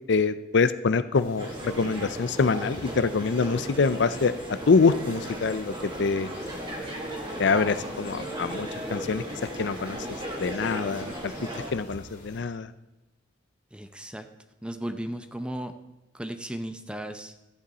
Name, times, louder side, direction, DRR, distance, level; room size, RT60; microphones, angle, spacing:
voice 1, 0.1-4.3 4.7-6.3 7.4-9.2 9.6-10.0 10.4-11.3 11.7-12.7, left 4 dB, 60° left, 13 dB, 0.5 m, -25 dB
sound 1, 1.1-12.4, left 2 dB, 45° left, 3.0 m, -49 dB
sound 2, 1.4-11.7, right 1 dB, 25° right, 1.8 m, -36 dB
voice 2, 13.7-14.3 14.6-15.7 16.1-17.4, right 1 dB, 5° right, 9 dB, 0.6 m, -35 dB
13.5 x 8.6 x 4.2 m, 0.99 s
head